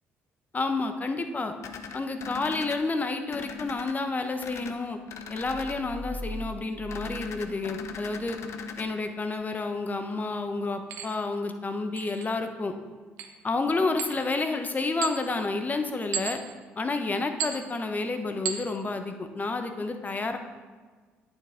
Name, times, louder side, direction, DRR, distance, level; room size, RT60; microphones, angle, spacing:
voice 1, 0.5-1.5 1.9-5.0 5.3-8.4 8.8-12.7 13.4-16.4 16.8-20.4, left 3 dB, 30° left, 7 dB, 0.9 m, -30 dB
sound 1, 1.6-2.8 3.3-3.9 4.4-4.7 5.1-5.8 6.9-8.9, left 6 dB, 60° left, 0.7 m, -40 dB
sound 2, 5.4-8.4, equal, 15° left, 1.9 m, -41 dB
sound 3, 9.3-9.4 10.9-11.2 12.0-12.3 13.2-13.4 14.0-14.4 15.0-15.4 16.1-16.6 17.4-17.7 18.4-18.7, right 8 dB, 75° right, 0.7 m, -34 dB
8.9 x 7.1 x 3.7 m, 1.4 s
hypercardioid pair, 60°, 5 cm